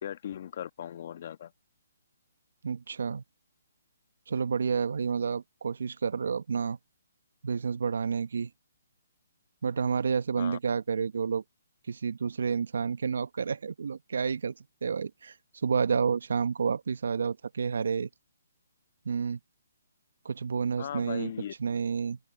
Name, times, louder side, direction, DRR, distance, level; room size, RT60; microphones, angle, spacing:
voice 1, 0.0-1.5 10.4-10.6 20.8-21.5, left 10 dB, 50° left, 1.3 m, -38 dB
voice 2, 2.6-3.2 4.3-6.8 7.4-8.5 9.6-11.4 11.9-14.5 14.8-15.3 15.6-18.1 19.0-19.4 20.2-21.3 21.6-22.2, right 6 dB, 70° right, 1.2 m, -30 dB
open air
hypercardioid pair, 150°, 0 cm